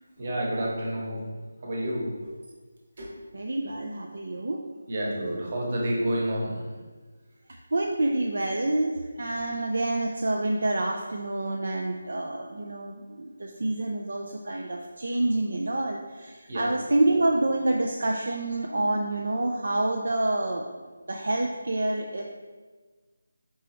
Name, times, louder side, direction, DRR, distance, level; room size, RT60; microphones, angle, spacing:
voice 1, 0.2-1.2 1.6-2.1 3.0-3.1 4.9-6.6 16.5-16.7, right 1 dB, 45° right, -3 dB, 1.1 m, -29 dB
voice 2, 3.3-4.6 7.7-20.6 21.1-22.2, right 2 dB, 70° right, 1 dB, 0.3 m, -27 dB
4.4 x 3.0 x 3.0 m, 1.4 s
figure-of-eight pair, 160°, 0 cm